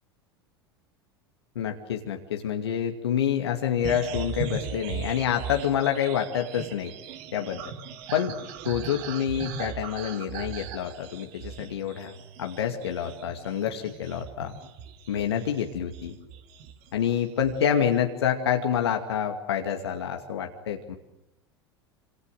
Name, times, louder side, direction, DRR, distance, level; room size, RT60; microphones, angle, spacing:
voice 1, 1.6-6.9 7.3-7.7 8.1-8.3 8.6-12.1 12.4-14.5 15.1-16.2 16.9-21.0, left 9 dB, 70° left, 3 dB, 2.5 m, -27 dB
sound 1, 3.8-16.9 17.2-17.9, right 6 dB, 55° right, 2.9 m, -39 dB
28.0 x 27.0 x 6.6 m, 0.90 s
figure-of-eight pair, 80°, 14 cm